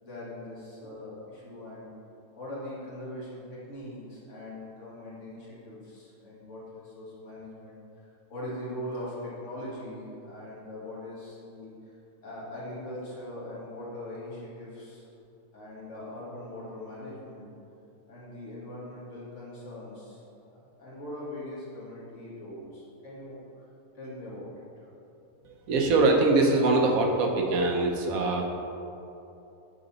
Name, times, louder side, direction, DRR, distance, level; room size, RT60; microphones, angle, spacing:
voice 1, 0.0-1.9 2.4-7.8 8.3-11.7 12.2-15.0 15.5-17.5 18.1-20.2 20.5-23.4 24.0-24.6, left 1 dB, 55° left, -7 dB, 1.8 m, -41 dB
voice 2, 25.7-28.5, right 2 dB, 70° right, 2 dB, 1.2 m, -23 dB
7.7 x 4.0 x 4.0 m, 2.8 s
omnidirectional pair, 1.6 m